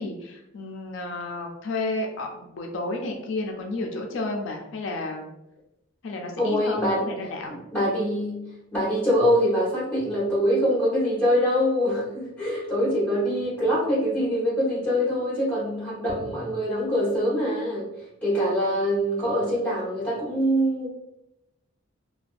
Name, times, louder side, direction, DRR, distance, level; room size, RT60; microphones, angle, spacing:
voice 1, 0.0-5.3 6.0-7.6, left 2 dB, 65° left, 2 dB, 0.3 m, -32 dB
voice 2, 6.4-7.0 7.5-17.9 18.2-20.9, equal, 5° left, -8 dB, 1.0 m, -24 dB
2.5 x 2.2 x 2.3 m, 0.86 s
head